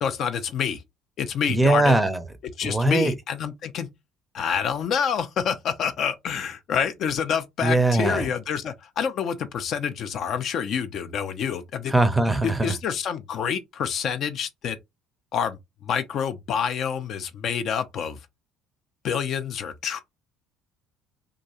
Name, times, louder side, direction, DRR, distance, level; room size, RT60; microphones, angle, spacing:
voice 1, 0.0-0.8 1.2-1.9 2.6-3.9 4.3-11.9 12.4-14.8 15.3-18.2 19.0-20.0, left 7 dB, 50° left, 0.4 m, -27 dB
voice 2, 1.5-2.2 2.6-3.1 7.6-8.3 11.9-12.7, right 2 dB, 5° right, 0.5 m, -21 dB
2.5 x 2.2 x 2.8 m
figure-of-eight pair, 55°, 0 cm